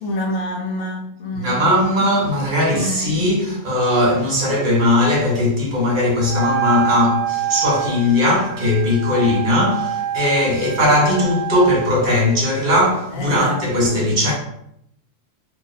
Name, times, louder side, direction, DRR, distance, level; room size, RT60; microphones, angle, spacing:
voice 1, 0.0-1.6 2.7-3.2 13.1-14.0, left 1 dB, 65° left, 1.1 m, -27 dB
voice 2, 1.3-14.3, left 1 dB, 40° right, 0.9 m, -18 dB
Wind instrument woodwind instrument, 6.2-11.8, right 9 dB, 80° right, 1.1 m, -26 dB
2.7 x 2.1 x 4.0 m
omnidirectional pair, 1.6 m